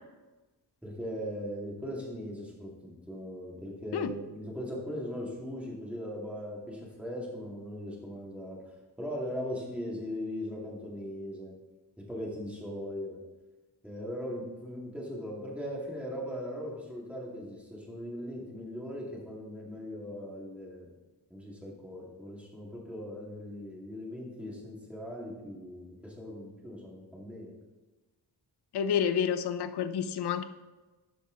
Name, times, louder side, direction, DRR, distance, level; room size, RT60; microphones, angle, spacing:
voice 1, 0.8-11.6 12.1-13.2 13.8-20.9 21.3-27.5, equal, 5° right, -4 dB, 2.3 m, -39 dB
voice 2, 28.7-30.4, left 8 dB, 70° left, 11 dB, 0.6 m, -29 dB
12.5 x 5.2 x 3.9 m, 1.2 s
wide cardioid pair, 120°, 41 cm